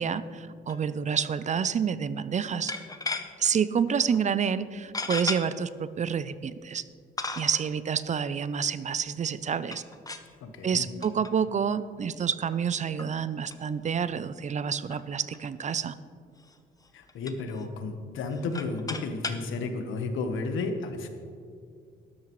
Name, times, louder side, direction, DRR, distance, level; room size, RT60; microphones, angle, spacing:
voice 1, 0.0-2.7 3.4-6.8 7.4-9.8 10.6-15.9, right 7 dB, 35° right, 15 dB, 0.4 m, -28 dB
sound 1, 0.7-0.9 1.1-1.3 2.7-3.5 4.1-4.2 4.9-5.4 6.3-6.4 7.2-7.7 9.6-10.3 11.0-11.3 11.7-11.8 12.5-12.6 13.0-13.1 13.5-13.6 13.9-14.0 14.2-14.3 14.8-15.7 16.4-16.6 16.8-17.7 18.2-19.4, left 3 dB, 20° left, 0.8 m, -35 dB
voice 2, 10.4-10.8 16.9-21.1, left 3 dB, 80° left, 6 dB, 1.2 m, -32 dB
12.5 x 11.5 x 3.1 m, 2.2 s
cardioid pair, 90°, 20 cm